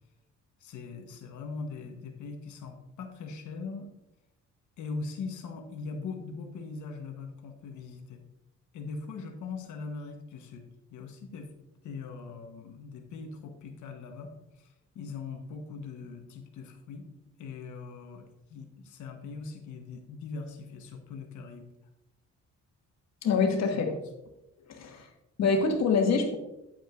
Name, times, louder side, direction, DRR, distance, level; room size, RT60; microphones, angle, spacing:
voice 1, 0.6-3.9 4.8-8.2 8.7-10.6 10.9-11.5 11.8-17.1 17.4-21.7 23.7-24.0, left 4 dB, 75° left, 4 dB, 1.2 m, -41 dB
voice 2, 23.2-24.0 24.7-25.1 25.4-26.4, left 4 dB, 60° left, 3 dB, 1.6 m, -25 dB
8.6 x 8.4 x 2.5 m, 0.91 s
cardioid pair, 90°, 30 cm